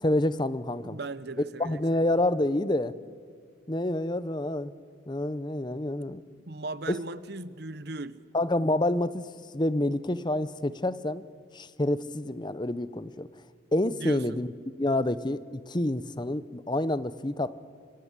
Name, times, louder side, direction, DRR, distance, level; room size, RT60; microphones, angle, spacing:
voice 1, 0.0-1.0 1.6-2.9 3.7-4.7 5.1-6.2 6.9-7.0 8.3-9.3 9.5-11.2 11.5-13.3 13.7-14.5 14.8-17.6, left 1 dB, 20° left, 15 dB, 0.7 m, -28 dB
voice 2, 0.8-2.2 6.5-8.2 13.9-14.4, right 2 dB, 50° right, 15 dB, 0.9 m, -38 dB
26.0 x 25.5 x 8.3 m, 2.1 s
head